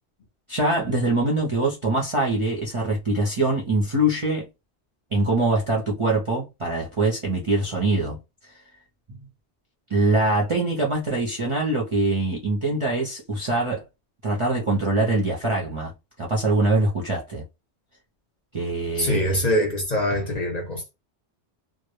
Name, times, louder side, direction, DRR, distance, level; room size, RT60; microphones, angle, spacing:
voice 1, 0.5-4.5 5.1-8.2 8.5-8.6 9.1-9.3 9.9-13.8 14.2-15.9 16.2-17.4 18.5-19.3, right 2 dB, 40° right, 0.4 m, -23 dB
voice 2, 19.0-20.9, equal, 50° left, 0.6 m, -23 dB
2.1 x 2.0 x 3.0 m
omnidirectional pair, 1.1 m